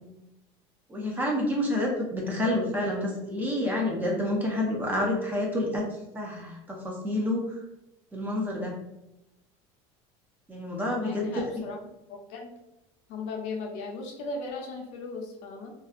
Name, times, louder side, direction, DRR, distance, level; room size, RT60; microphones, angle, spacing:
voice 1, 0.9-5.8 6.1-7.4 8.1-8.7 10.5-11.3, left 1 dB, 15° right, -2 dB, 0.5 m, -28 dB
voice 2, 10.9-11.8 12.1-12.5 13.1-15.7, left 3 dB, 60° left, 1 dB, 0.6 m, -37 dB
2.6 x 2.2 x 2.4 m, 0.91 s
cardioid pair, 150°, 13 cm